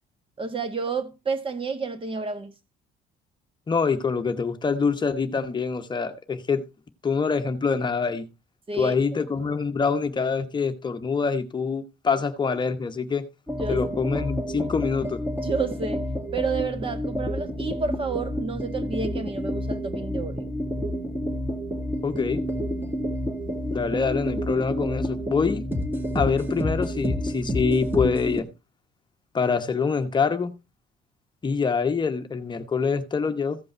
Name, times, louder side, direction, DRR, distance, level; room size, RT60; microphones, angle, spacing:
voice 1, 0.4-2.5 8.7-9.0 13.6-13.9 15.4-16.1 16.3-20.5, right 4 dB, 30° right, 1.7 m, -30 dB
voice 2, 3.7-6.6 7.0-8.2 8.8-13.2 13.7-15.2 22.0-22.4 23.7-25.6 26.1-28.4 29.3-30.5 31.4-33.6, left 5 dB, 25° left, 1.0 m, -25 dB
sound 1, 13.5-28.4, equal, 10° right, 2.4 m, -29 dB
15.0 x 5.4 x 4.5 m
cardioid pair, 110°, 17 cm